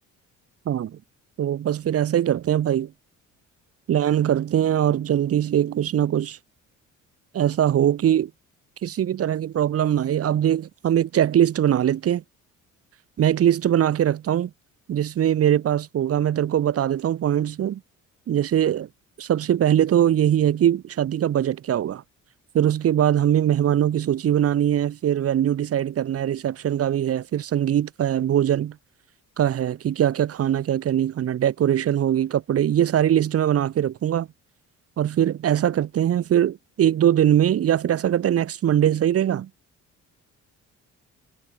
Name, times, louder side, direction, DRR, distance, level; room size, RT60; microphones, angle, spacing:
voice 1, 0.7-1.0 1.4-2.9 3.9-6.4 7.3-8.3 8.8-12.2 13.2-14.5 14.9-17.8 18.3-18.9 19.2-22.0 22.5-28.8 29.4-34.3 35.0-39.5, right 10 dB, 50° right, 7.1 m, -21 dB
cardioid pair, 175°, 30 cm